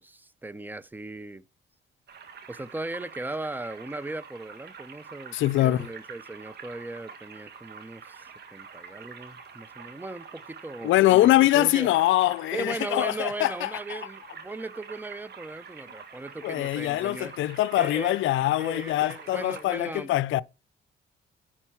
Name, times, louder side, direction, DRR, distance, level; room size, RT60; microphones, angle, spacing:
voice 1, 0.0-1.4 2.5-11.9 12.5-17.3 17.8-18.2 18.6-20.1, right 2 dB, 10° right, 0.6 m, -37 dB
sound 1, 2.1-19.6, right 6 dB, 55° right, 1.9 m, -46 dB
voice 2, 5.3-5.9 10.8-14.0 16.4-20.4, left 15 dB, 80° left, 0.5 m, -23 dB
10.0 x 4.4 x 5.8 m
cardioid pair, 90°, 20 cm